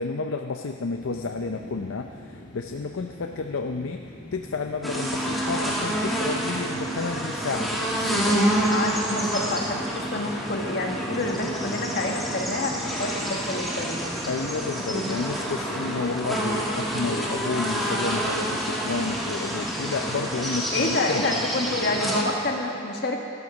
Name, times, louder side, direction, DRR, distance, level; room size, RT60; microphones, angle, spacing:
voice 1, 0.0-4.0 4.3-8.7 14.3-21.3, left 4 dB, 90° left, 5 dB, 0.6 m, -31 dB
sound 1, 0.9-20.1, left 1 dB, 75° left, 2.6 m, -45 dB
sound 2, 4.8-22.2, equal, ahead, 1.6 m, -28 dB
voice 2, 8.7-14.1 20.7-23.2, left 2 dB, 50° left, 1 dB, 1.4 m, -28 dB
12.5 x 12.0 x 6.2 m, 2.5 s
head